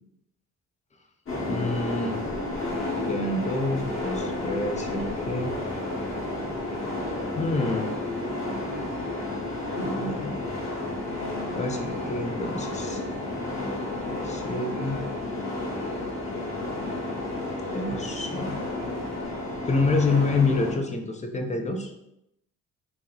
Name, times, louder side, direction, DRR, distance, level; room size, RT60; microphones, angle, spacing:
sound 1, 1.2-20.7, left 2 dB, 45° left, 1.3 m, -31 dB
voice 1, 1.4-2.2 2.9-5.5 7.3-7.9 8.5-8.6 9.7-10.4 11.5-13.0 14.2-15.0 17.7-18.6 19.6-21.9, left 3 dB, 25° left, 4 dB, 0.6 m, -28 dB
3.0 x 2.8 x 3.8 m, 0.83 s
cardioid pair, 90°, 30 cm